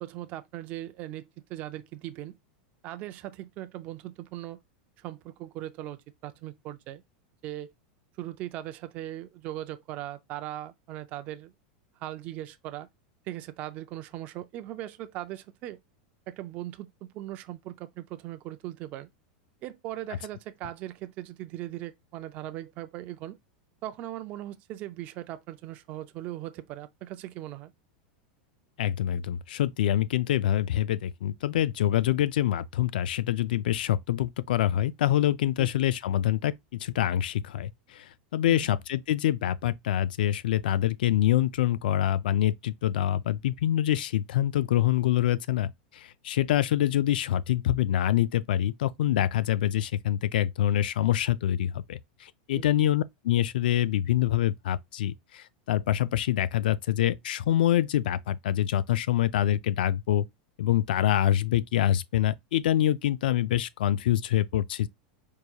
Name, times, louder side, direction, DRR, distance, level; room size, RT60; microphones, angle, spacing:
voice 1, 0.0-2.4 2.8-4.6 5.0-7.0 7.4-7.7 8.2-11.5 12.0-12.9 13.3-15.8 16.3-19.1 19.6-23.4 23.8-27.7 35.6-35.7 38.5-38.7 52.6-52.7, right 14 dB, 30° right, 0.4 m, -39 dB
voice 2, 28.8-36.5 36.8-60.2 60.6-64.9, left 12 dB, 90° left, 0.3 m, -26 dB
4.6 x 2.8 x 2.3 m
supercardioid pair, 165°, 5 cm